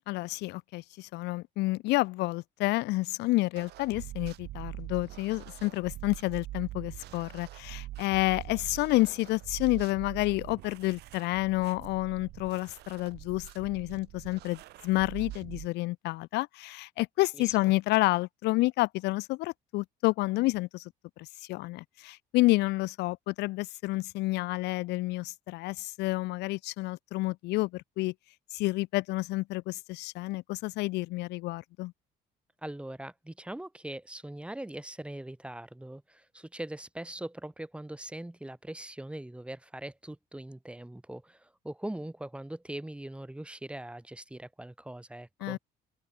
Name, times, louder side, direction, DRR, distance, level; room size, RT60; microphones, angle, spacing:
voice 1, 0.1-20.9 21.2-28.1 28.5-31.9 45.4-45.6, left 20 dB, 85° left, 0.7 m, -29 dB
sound 1, 3.5-15.7, right 16 dB, 75° right, 2.4 m, -44 dB
voice 2, 32.6-45.6, right 1 dB, 5° right, 5.4 m, -41 dB
open air
cardioid pair, 110°, 17 cm